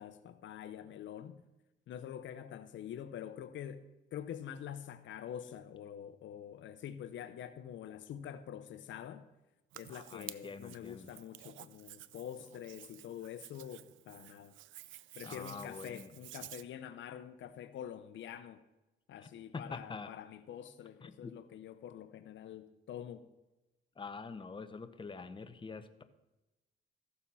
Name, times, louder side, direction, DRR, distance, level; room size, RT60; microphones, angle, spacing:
voice 1, 0.0-1.4 1.9-3.8 4.1-9.3 9.7-14.5 15.1-18.6 19.1-23.3, left 9 dB, 70° left, 0.8 m, -46 dB
Hands, 9.7-16.6, right 14 dB, 75° right, 0.5 m, -52 dB
voice 2, 9.9-11.1 15.2-16.1 19.2-20.1 21.0-21.3 24.0-26.0, left 4 dB, 25° left, 0.9 m, -46 dB
14.5 x 7.1 x 5.6 m
cardioid pair, 90°, 20 cm